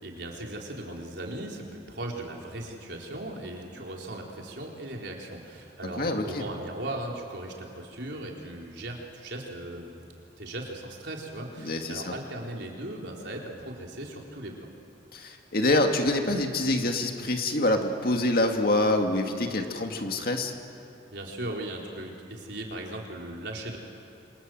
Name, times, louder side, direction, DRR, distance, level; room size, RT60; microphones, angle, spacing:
voice 1, 0.0-10.0 10.4-14.5 21.1-23.8, right 1 dB, 70° right, -1 dB, 4.1 m, -38 dB
voice 2, 5.8-6.4 11.6-12.1 15.1-20.5, left 2 dB, 55° left, 3 dB, 2.3 m, -26 dB
28.0 x 26.0 x 7.9 m, 2.6 s
head